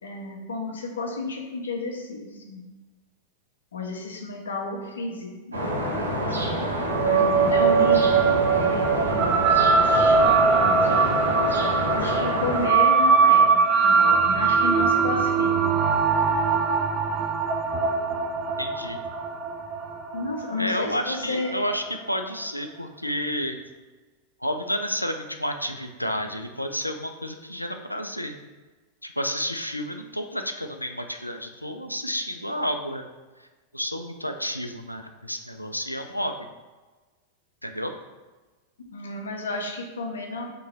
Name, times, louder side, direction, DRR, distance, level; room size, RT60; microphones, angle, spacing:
voice 1, 0.0-2.6 3.7-5.7 7.0-10.9 11.9-15.7 20.1-21.7 38.9-40.4, left 3 dB, 70° left, 2 dB, 0.7 m, -32 dB
sound 1, 5.5-12.7, equal, 80° right, 0.8 m, -27 dB
sound 2, 6.8-21.5, right 5 dB, 30° right, 0.4 m, -21 dB
voice 2, 18.6-19.0 20.6-23.6 24.4-28.4 29.0-33.0 33.7-36.3 37.6-37.9, equal, 90° left, 6 dB, 0.4 m, -30 dB
3.7 x 3.0 x 4.4 m, 1.3 s
figure-of-eight pair, 90°, 0 cm